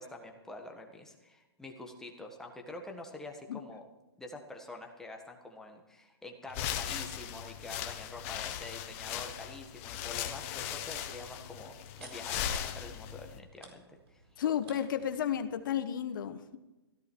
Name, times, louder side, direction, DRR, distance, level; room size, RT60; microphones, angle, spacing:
voice 1, 0.0-3.8 4.2-11.7 12.0-13.8 14.1-14.2, left 2 dB, 5° left, 1 dB, 1.4 m, -46 dB
sound 1, 6.5-13.4, left 10 dB, 30° left, 1.1 m, -38 dB
sound 2, 10.4-15.8, right 3 dB, 70° right, 4.4 m, -56 dB
voice 2, 14.4-16.6, left 9 dB, 50° left, 9 dB, 1.2 m, -32 dB
16.0 x 14.0 x 4.6 m, 1.0 s
hypercardioid pair, 155°, 14 cm